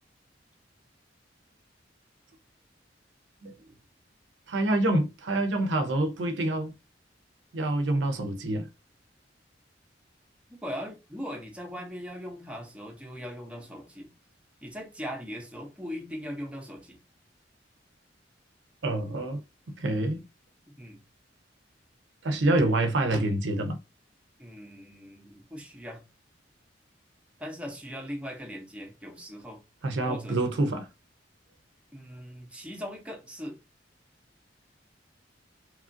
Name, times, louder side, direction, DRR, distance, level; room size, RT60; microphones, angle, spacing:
voice 1, 4.5-6.7 7.5-8.7 18.8-19.4 19.7-20.2 22.2-23.8 29.8-30.9, right 2 dB, 70° right, 0.5 m, -26 dB
voice 2, 10.5-14.1 14.6-17.0 20.8-21.0 24.4-26.0 27.4-29.6 30.1-30.5 31.9-33.6, equal, 5° right, 0.7 m, -40 dB
2.9 x 2.4 x 2.5 m
head